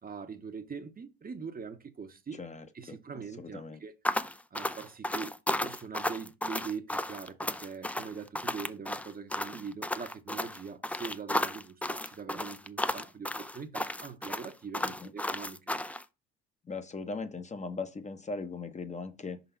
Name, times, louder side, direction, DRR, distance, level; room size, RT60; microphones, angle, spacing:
voice 1, 0.0-2.4 2.7-3.9 4.5-15.6, right 5 dB, 30° right, 1.0 m, -42 dB
voice 2, 2.4-3.0 3.4-3.8 14.8-15.1 16.6-19.4, left 4 dB, 25° left, 0.9 m, -39 dB
sound 1, 4.0-16.0, left 1 dB, 5° left, 0.5 m, -33 dB
5.4 x 4.0 x 5.7 m
supercardioid pair, 70°, 29 cm